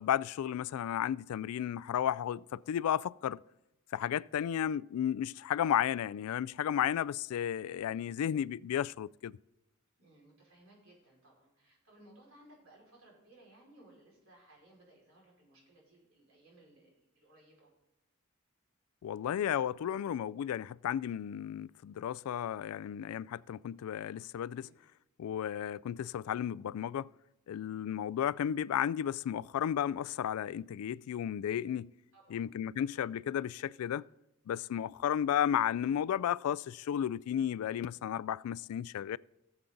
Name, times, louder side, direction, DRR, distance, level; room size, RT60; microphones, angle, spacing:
voice 1, 0.0-3.4 3.9-9.4 19.0-24.7 25.2-27.1 27.5-31.9 32.3-34.0 34.5-39.2, left 9 dB, 85° left, 0.3 m, -33 dB
voice 2, 10.0-17.7 24.6-24.7 32.1-32.5, right 1 dB, 75° right, 5.1 m, -61 dB
17.5 x 7.1 x 3.9 m
head